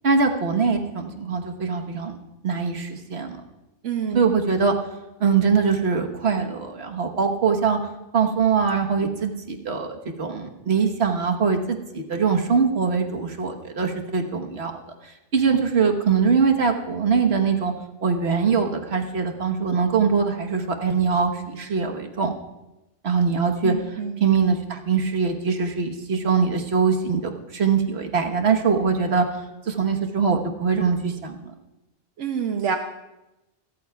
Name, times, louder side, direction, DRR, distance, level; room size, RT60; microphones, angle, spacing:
voice 1, 0.0-2.1 2.4-3.4 4.1-4.7 5.2-7.8 8.1-14.7 15.0-17.7 18.0-22.3 23.0-23.7 24.2-29.3 29.7-31.5, right 5 dB, 65° right, 3 dB, 1.5 m, -22 dB
voice 2, 3.8-4.2 23.6-24.2 32.2-32.8, right 7 dB, 85° right, 4 dB, 1.1 m, -27 dB
27.0 x 14.0 x 2.4 m, 0.99 s
omnidirectional pair, 1.2 m